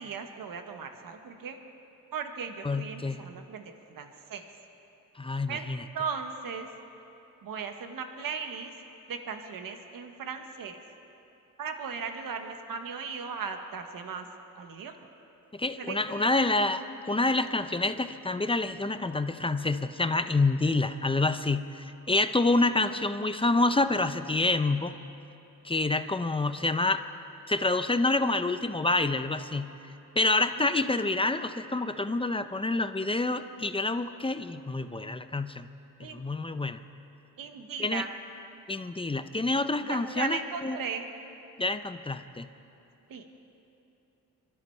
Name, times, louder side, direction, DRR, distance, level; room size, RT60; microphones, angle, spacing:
voice 1, 0.0-1.6 2.1-4.4 5.5-5.7 5.9-6.7 7.4-8.7 9.1-10.8 11.6-14.3 14.5-14.9 15.8-16.6 30.6-31.0 36.0-36.2 37.4-38.1 39.9-41.1 43.1-43.2, right 6 dB, 80° right, 6 dB, 1.3 m, -37 dB
voice 2, 2.6-3.2 5.2-5.8 15.6-24.9 25.6-27.0 27.5-29.7 30.2-35.7 36.1-36.8 37.8-38.0 38.7-40.8 41.6-42.5, left 2 dB, 15° left, 10 dB, 0.6 m, -27 dB
24.5 x 12.5 x 4.5 m, 2.9 s
cardioid pair, 75°, 34 cm